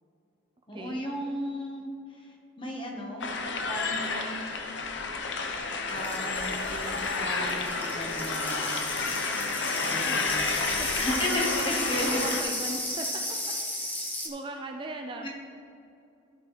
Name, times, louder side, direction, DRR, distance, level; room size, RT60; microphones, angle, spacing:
voice 1, 0.7-4.4 5.9-8.8 9.8-10.6 11.0-12.6 15.2-15.3, equal, 25° left, 0 dB, 1.3 m, -35 dB
sound 1, 3.2-12.4, left 4 dB, 70° left, 0.8 m, -31 dB
sound 2, 5.9-14.3, left 1 dB, 10° left, 0.7 m, -35 dB
voice 2, 12.1-13.2 14.2-15.3, right 2 dB, 25° right, 3 dB, 0.4 m, -38 dB
14.0 x 6.1 x 3.2 m, 2.6 s
head